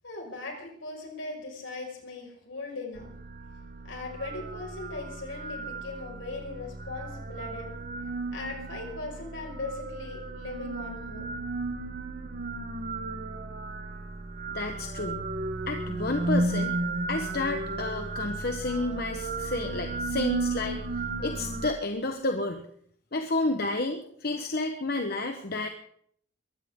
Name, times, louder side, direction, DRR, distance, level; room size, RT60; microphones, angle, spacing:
voice 1, 0.0-3.1 3.8-7.7 8.3-11.3, left 3 dB, 75° left, 1 dB, 5.7 m, -39 dB
sound 1, 2.9-21.7, right 2 dB, 45° right, 1.2 m, -34 dB
voice 2, 14.5-15.3 15.7-16.8 17.1-20.8 21.2-22.6 23.1-25.7, left 2 dB, 50° left, 5 dB, 1.1 m, -30 dB
22.0 x 16.0 x 3.8 m, 0.64 s
head